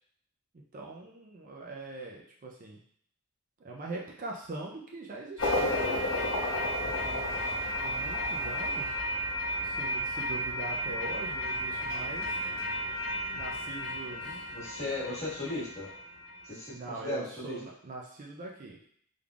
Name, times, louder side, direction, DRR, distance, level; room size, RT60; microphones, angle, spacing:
voice 1, 0.7-2.8 3.6-5.8 6.8-9.0 9.6-12.4 13.3-14.5 16.7-18.8, right 2 dB, 35° right, -1 dB, 0.4 m, -42 dB
sound 1, 5.4-16.5, equal, 55° left, 0.8 m, -33 dB
voice 2, 14.0-15.9 16.4-17.6, left 2 dB, 30° left, -8 dB, 1.5 m, -37 dB
3.5 x 3.4 x 2.3 m, 0.64 s
head